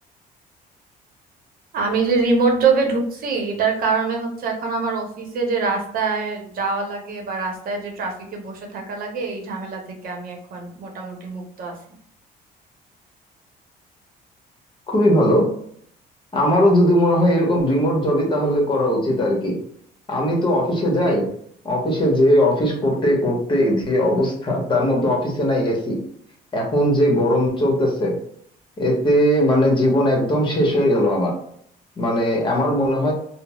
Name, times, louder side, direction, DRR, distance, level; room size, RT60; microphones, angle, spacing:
voice 1, 1.7-11.7, right 4 dB, 60° right, 2 dB, 0.8 m, -24 dB
voice 2, 14.9-15.5 16.3-19.6 20.1-21.3 21.6-26.0 26.5-28.1 28.8-31.3 32.0-33.1, equal, 30° left, -1 dB, 1.0 m, -19 dB
3.8 x 2.0 x 2.2 m, 0.65 s
cardioid pair, 110°, 17 cm